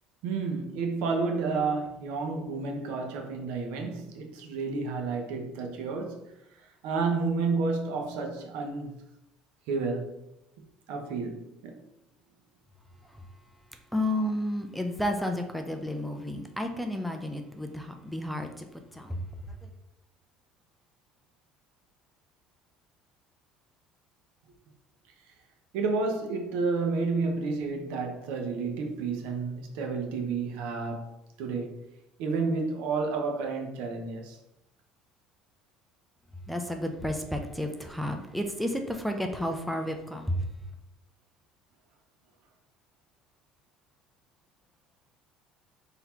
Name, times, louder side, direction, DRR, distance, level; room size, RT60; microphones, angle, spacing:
voice 1, 0.2-6.3 6.8-8.9 9.7-10.1 10.9-11.8 25.7-31.1 31.4-31.8 32.2-34.4, right 4 dB, 80° right, 0.8 m, -30 dB
voice 2, 13.9-19.6 36.5-40.4, left 1 dB, ahead, 0.4 m, -32 dB
4.0 x 2.8 x 4.3 m
cardioid pair, 155°, 2 cm